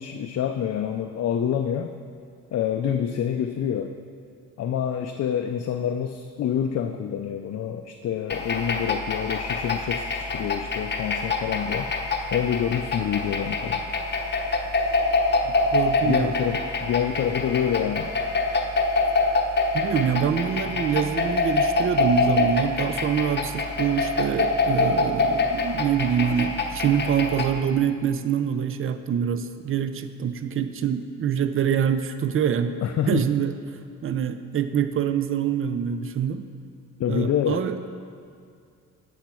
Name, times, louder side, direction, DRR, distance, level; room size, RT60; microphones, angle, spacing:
voice 1, 0.0-1.9 2.5-3.9 4.6-11.9 12.3-13.8 16.0-18.1 32.8-33.2 37.0-37.7, left 9 dB, 50° left, 6 dB, 0.5 m, -27 dB
sound 1, 8.3-27.6, left 3 dB, 30° left, 0.8 m, -25 dB
voice 2, 15.5-16.4 19.7-32.7 33.1-33.5 34.0-36.5 37.1-37.8, right 8 dB, 40° right, 10 dB, 0.5 m, -25 dB
8.1 x 5.7 x 4.4 m, 2.3 s
supercardioid pair, 65°, 34 cm